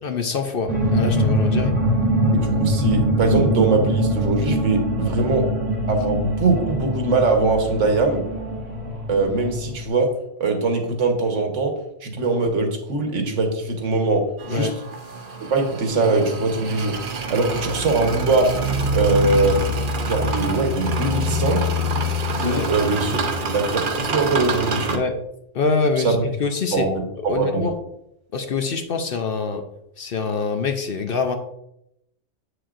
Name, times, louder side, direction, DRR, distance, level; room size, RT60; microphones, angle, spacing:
voice 1, 0.0-1.7 14.5-14.7 22.4-22.7 24.9-25.2 25.5-26.8 27.3-27.7 28.3-29.6 30.0-31.4, left 4 dB, 55° left, 6 dB, 0.7 m, -25 dB
sound 1, 0.7-9.9, right 1 dB, 35° left, 2.0 m, -22 dB
voice 2, 2.3-5.5 5.9-8.2 9.1-10.1 10.4-11.7 12.0-14.2 14.5-14.7 15.5-16.9 17.3-18.5 18.9-19.6 20.0-21.7 22.3-25.0 26.0-26.2 26.7-27.6, right 3 dB, 75° right, 4 dB, 1.4 m, -22 dB
sound 2, 14.4-25.0, equal, 50° right, 0.8 m, -25 dB
7.7 x 6.5 x 2.5 m, 0.79 s
omnidirectional pair, 1.3 m